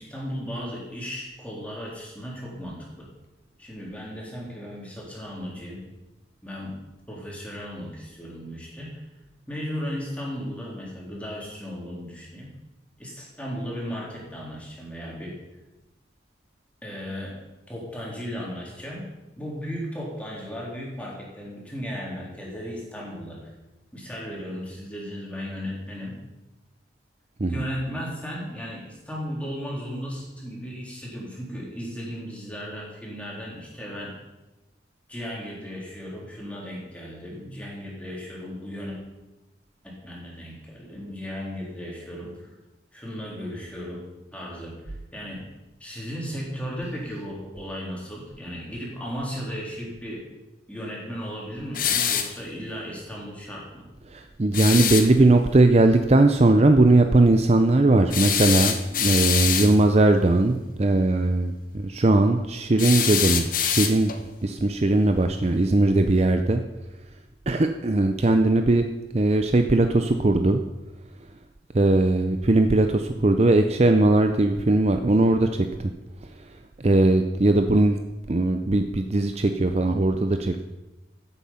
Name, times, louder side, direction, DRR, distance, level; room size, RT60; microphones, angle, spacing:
voice 1, 0.0-3.1 3.6-5.8 6.4-6.8 7.1-9.0 9.5-12.5 13.0-15.3 16.8-17.3 17.7-19.0 19.4-23.5 23.9-26.2 27.5-34.1 35.1-39.0 39.8-42.5 42.9-44.0 44.3-45.4 45.8-50.2 50.7-53.9 62.7-62.9, equal, 5° left, -4 dB, 3.6 m, -35 dB
sound 1, 51.7-52.4 54.5-55.1 58.1-59.8 62.8-64.2, left 8 dB, 45° left, 1.0 m, -24 dB
voice 2, 54.1-64.1 64.4-66.6 67.5-68.9 69.1-70.6 71.7-75.9 76.8-78.0 78.3-80.6, right 2 dB, 35° right, 7 dB, 0.6 m, -19 dB
14.5 x 8.4 x 5.7 m, 1.0 s
head